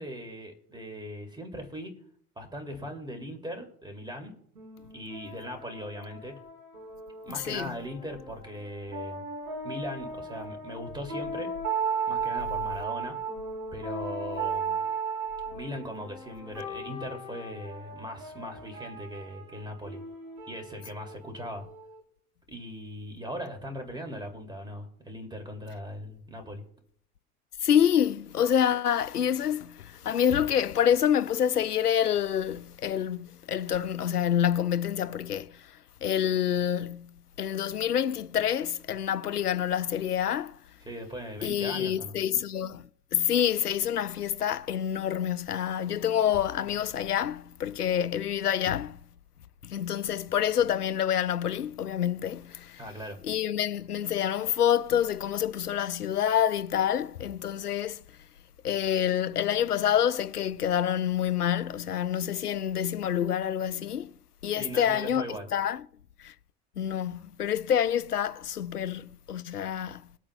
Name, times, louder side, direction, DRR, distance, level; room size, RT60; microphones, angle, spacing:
voice 1, 0.0-1.9 2.4-4.3 4.9-6.4 7.2-9.2 9.6-11.5 12.1-13.2 13.7-14.8 15.5-20.0 20.5-21.6 22.5-26.6 40.8-42.2 52.8-53.2 64.6-65.5, equal, 10° right, 2.4 m, -39 dB
sound 1, 4.5-22.0, right 4 dB, 80° right, 3.7 m, -36 dB
voice 2, 27.6-35.6 36.0-37.1 37.4-40.5 41.4-49.0 49.6-52.8 53.2-58.0 58.6-64.1 64.4-65.2 65.5-65.8 66.2-66.3 66.8-70.0, left 9 dB, 90° left, 0.6 m, -27 dB
21.5 x 8.5 x 2.2 m
figure-of-eight pair, 75°, 44 cm